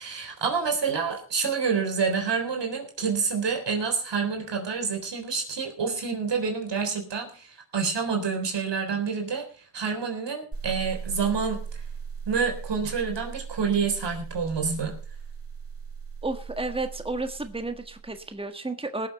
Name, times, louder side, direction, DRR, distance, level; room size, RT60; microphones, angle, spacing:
voice 1, 0.0-9.5 9.7-11.6 12.3-14.9, right 5 dB, 85° right, 3 dB, 3.9 m, -28 dB
sound 1, 10.5-18.3, right 6 dB, 35° right, 5.2 m, -38 dB
voice 2, 16.2-19.1, right 2 dB, 15° right, 7 dB, 1.5 m, -32 dB
19.5 x 7.5 x 5.3 m, 0.40 s
cardioid pair, 65°, 41 cm